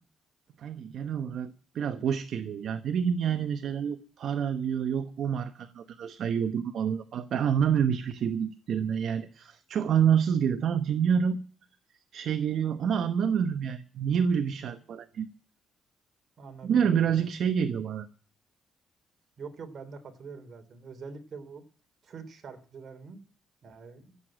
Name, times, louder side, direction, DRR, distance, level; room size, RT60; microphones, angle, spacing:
voice 1, 0.6-11.4 12.1-15.3 16.6-18.1, right 7 dB, 65° right, 9 dB, 1.0 m, -28 dB
voice 2, 16.4-17.3 19.4-21.6 22.0-23.2 23.6-24.2, right 5 dB, 50° right, 6 dB, 3.4 m, -45 dB
15.5 x 8.2 x 8.7 m, 0.42 s
cardioid pair, 90°, 0 cm